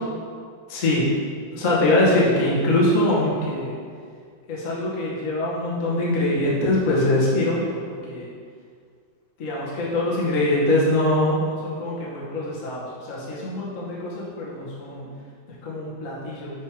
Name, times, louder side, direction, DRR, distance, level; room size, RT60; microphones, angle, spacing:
voice 1, 0.7-1.1 1.5-3.7 4.5-7.8 8.1-8.3 9.4-15.1 15.6-16.5, left 1 dB, 80° left, -6 dB, 0.7 m, -23 dB
6.8 x 6.8 x 5.2 m, 2.1 s
omnidirectional pair, 4.8 m